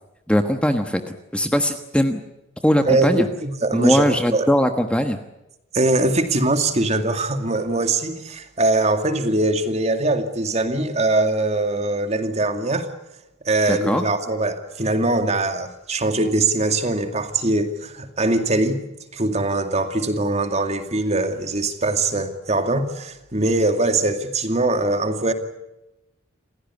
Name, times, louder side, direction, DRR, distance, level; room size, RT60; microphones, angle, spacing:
voice 1, 0.3-1.0 1.3-2.2 2.6-3.3 3.7-5.2 13.7-14.0, equal, 5° left, 1.3 m, -20 dB
voice 2, 2.8-4.5 5.7-12.9 13.4-18.8 19.1-25.3, right 2 dB, 35° right, 2.3 m, -22 dB
28.0 x 16.0 x 9.8 m
head